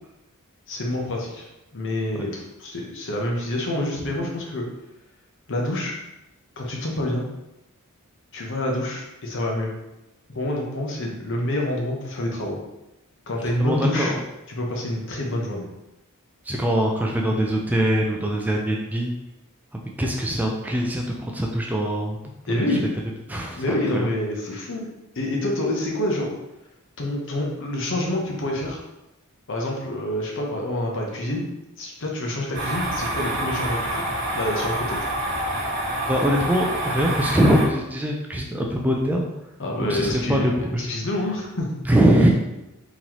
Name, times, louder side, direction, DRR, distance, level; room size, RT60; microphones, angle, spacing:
voice 1, 0.7-1.5 1.7-4.7 5.5-5.9 6.6-7.2 8.3-9.7 10.3-12.6 13.3-14.1 14.5-15.7 22.5-22.8 23.6-24.9 25.2-26.3 27.0-28.8 29.5-31.5 31.8-34.0 34.3-35.0 39.6-41.7, left 1 dB, 60° left, 0 dB, 0.8 m, -27 dB
voice 2, 13.6-14.2 16.5-19.1 19.7-22.2 22.7-22.8 23.3-24.1 36.1-39.3 39.8-40.8 41.9-42.3, equal, 5° right, 0 dB, 0.3 m, -22 dB
sound 1, 32.5-37.7, right 1 dB, 70° right, 1.0 m, -27 dB
3.9 x 3.0 x 2.9 m, 0.93 s
head